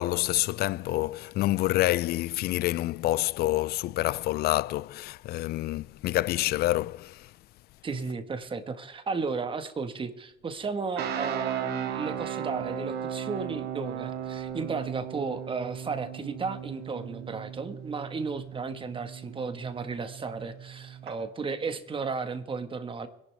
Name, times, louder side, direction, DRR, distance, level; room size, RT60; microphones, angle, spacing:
voice 1, 0.0-7.3, left 16 dB, 70° left, 0.4 m, -27 dB
voice 2, 7.8-23.1, right 4 dB, 30° right, 1.6 m, -34 dB
sound 1, 11.0-21.1, right 8 dB, 75° right, 1.9 m, -36 dB
24.5 x 11.5 x 3.5 m
cardioid pair, 110°, 17 cm